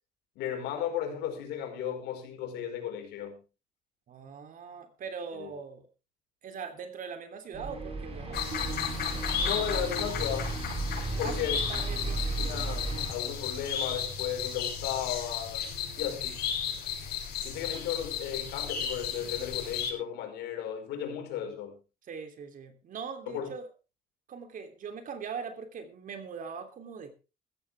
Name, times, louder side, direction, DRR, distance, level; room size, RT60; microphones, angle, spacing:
voice 1, 0.3-3.4 5.4-5.5 9.4-10.5 11.2-11.6 12.4-15.7 16.0-16.4 17.4-21.8 23.3-23.5, left 9 dB, 85° left, 4 dB, 5.1 m, -35 dB
voice 2, 4.1-5.9 6.4-8.5 10.9-12.2 15.6-16.4 22.0-23.7 24.3-27.1, right 6 dB, 55° right, 7 dB, 3.1 m, -41 dB
sound 1, 7.5-13.1, right 2 dB, 35° right, 5.2 m, -34 dB
sound 2, 8.3-19.9, left 8 dB, 70° left, 6.9 m, -34 dB
15.0 x 14.5 x 3.5 m, 0.32 s
cardioid pair, 110°, 17 cm